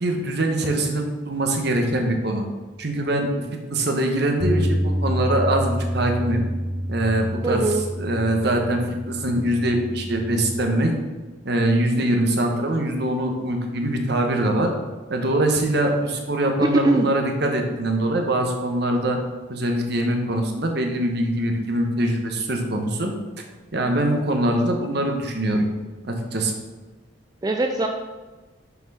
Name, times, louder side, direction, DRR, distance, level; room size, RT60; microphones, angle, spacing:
voice 1, 0.0-2.4 2.8-3.3 3.7-6.4 6.9-7.7 8.0-10.9 11.4-14.7 15.1-19.2 19.5-23.1 23.7-25.6 26.0-26.5, right 1 dB, 55° right, 3 dB, 1.1 m, -23 dB
Bass guitar, 4.4-10.6, equal, 60° left, 1.1 m, -28 dB
voice 2, 7.4-7.9 16.6-17.1 27.4-27.9, right 2 dB, 20° right, 3 dB, 0.4 m, -21 dB
6.8 x 4.5 x 5.4 m, 1.2 s
head